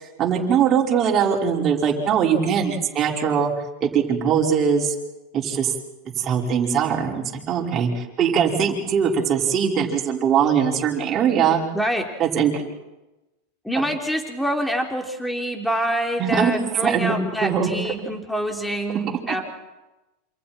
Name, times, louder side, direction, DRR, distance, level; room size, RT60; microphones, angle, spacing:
voice 1, 0.2-3.5 3.8-4.9 5.3-5.7 6.2-11.6 12.2-12.7 16.2-17.7 19.3-19.4, right 7 dB, 35° right, -1 dB, 5.4 m, -21 dB
voice 2, 11.7-12.1 13.6-19.4, equal, ahead, 3 dB, 3.7 m, -26 dB
28.5 x 27.5 x 4.5 m, 1.0 s
hypercardioid pair, 100°, 0 cm